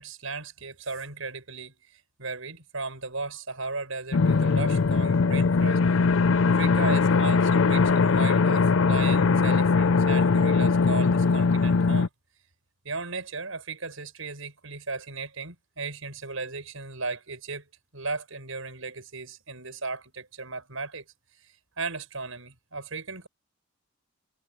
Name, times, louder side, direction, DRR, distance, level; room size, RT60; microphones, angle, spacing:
voice 1, 0.0-5.8 6.4-12.1 12.8-17.6 17.9-21.1 21.4-23.3, right 3 dB, 75° right, 6.0 m, -36 dB
sound 1, 4.1-12.1, left 4 dB, 65° left, 0.5 m, -21 dB
head